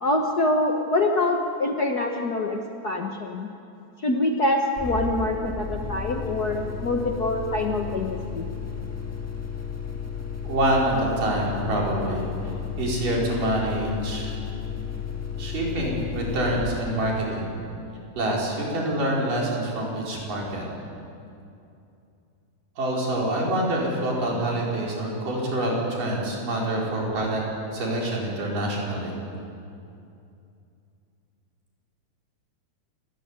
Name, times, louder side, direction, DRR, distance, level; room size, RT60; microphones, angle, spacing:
voice 1, 0.0-3.5 4.0-8.5, left 2 dB, 65° left, 2 dB, 0.9 m, -25 dB
sound 1, 4.8-18.2, left 6 dB, 10° left, 0.7 m, -33 dB
voice 2, 10.4-12.3 12.8-14.3 15.4-17.5 18.2-20.7 22.8-27.4 27.7-29.1, right 1 dB, 75° right, -3 dB, 6.4 m, -26 dB
28.5 x 15.5 x 9.7 m, 2.6 s
omnidirectional pair, 3.8 m